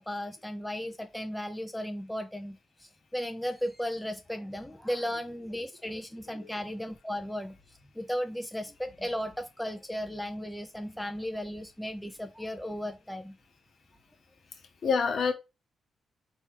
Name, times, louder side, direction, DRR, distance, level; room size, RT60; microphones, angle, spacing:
voice 1, 0.0-7.5 8.0-13.3, equal, 5° left, 0.5 m, -35 dB
voice 2, 14.5-15.3, left 5 dB, 55° left, 1.1 m, -28 dB
4.2 x 3.3 x 3.2 m
cardioid pair, 115°, 0 cm